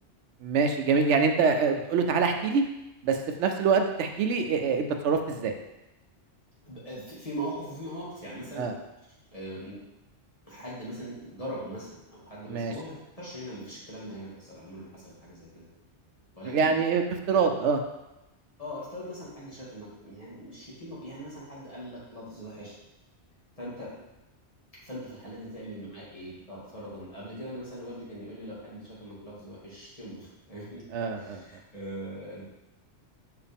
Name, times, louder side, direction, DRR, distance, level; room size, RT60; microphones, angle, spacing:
voice 1, 0.4-2.6 3.0-5.5 8.6-8.7 12.5-12.7 16.5-17.8 30.9-31.4, right 5 dB, 80° right, 6 dB, 0.9 m, -25 dB
voice 2, 6.7-8.7 9.3-9.8 10.5-15.7 16.3-16.7 17.2-17.5 18.6-22.7 23.6-23.9 24.8-30.8 31.2-32.4, equal, 30° left, -8 dB, 2.2 m, -40 dB
5.6 x 4.8 x 3.5 m, 0.95 s
omnidirectional pair, 1.2 m